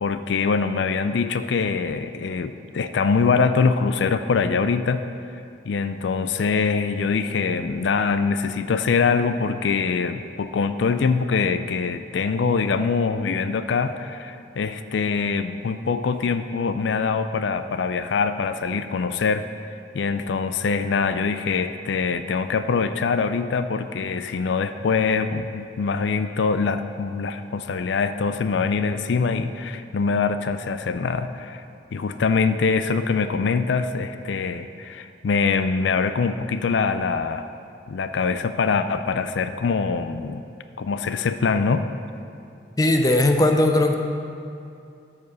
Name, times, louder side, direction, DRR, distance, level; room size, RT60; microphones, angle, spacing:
voice 1, 0.0-5.0 5.6-19.4 19.9-31.6 31.9-37.5 37.9-40.4 40.8-41.8, left 5 dB, 70° left, 10 dB, 0.4 m, -23 dB
voice 2, 42.8-43.9, left 1 dB, 20° left, 5 dB, 0.5 m, -18 dB
13.5 x 4.8 x 6.2 m, 2.6 s
head